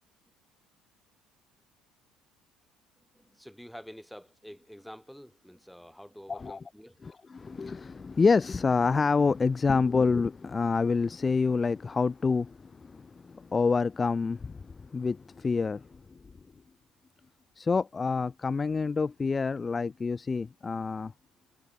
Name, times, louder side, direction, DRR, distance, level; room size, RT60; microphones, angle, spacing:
voice 1, 3.0-7.0, equal, ahead, 6.7 m, -48 dB
voice 2, 6.3-6.6 7.0-16.0 17.6-21.1, left 4 dB, 25° left, 0.8 m, -27 dB
cardioid pair, 110°, 0 cm